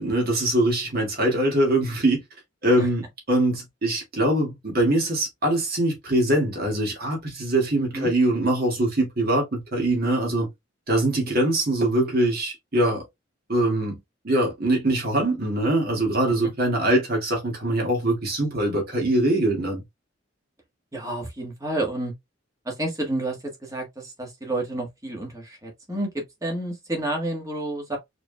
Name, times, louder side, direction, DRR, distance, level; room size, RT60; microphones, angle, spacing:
voice 1, 0.0-2.2 2.6-3.0 3.3-10.5 10.9-13.0 13.5-14.0 14.2-19.8, right 1 dB, 50° right, 1.9 m, -23 dB
voice 2, 7.8-8.1 20.9-22.1 22.6-28.0, right 1 dB, 15° right, 1.4 m, -30 dB
4.8 x 3.3 x 2.2 m
head